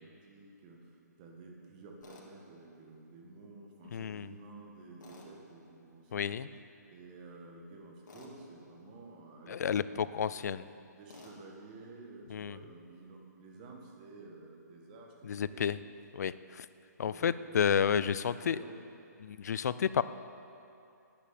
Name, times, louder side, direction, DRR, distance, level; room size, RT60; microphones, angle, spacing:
voice 1, 0.0-6.3 6.9-15.8 17.0-17.9 18.3-18.8, right 3 dB, 30° right, 0 dB, 1.7 m, -52 dB
Tools, 2.0-2.3 5.0-5.3 8.1-8.3 11.1-11.4, left 3 dB, 85° left, 2.5 m, -52 dB
voice 2, 3.9-4.3 6.1-6.5 9.5-10.6 12.3-12.6 15.2-15.8 16.1-16.7 17.0-18.6 19.2-20.0, left 7 dB, 65° left, 16 dB, 0.4 m, -31 dB
10.0 x 9.8 x 7.0 m, 2.6 s
hypercardioid pair, 160°, 10 cm